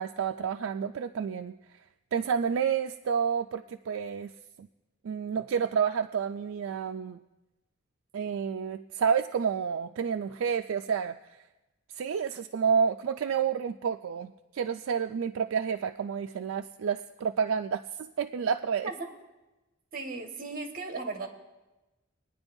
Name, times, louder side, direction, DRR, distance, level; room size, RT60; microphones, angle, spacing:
voice 1, 0.0-1.5 2.1-4.3 4.6-4.7 5.0-7.2 8.1-11.2 11.9-18.9, right 7 dB, 75° right, 7 dB, 0.4 m, -29 dB
voice 2, 19.9-21.3, right 3 dB, 45° right, 3 dB, 1.6 m, -36 dB
22.0 x 9.7 x 2.7 m, 1.1 s
head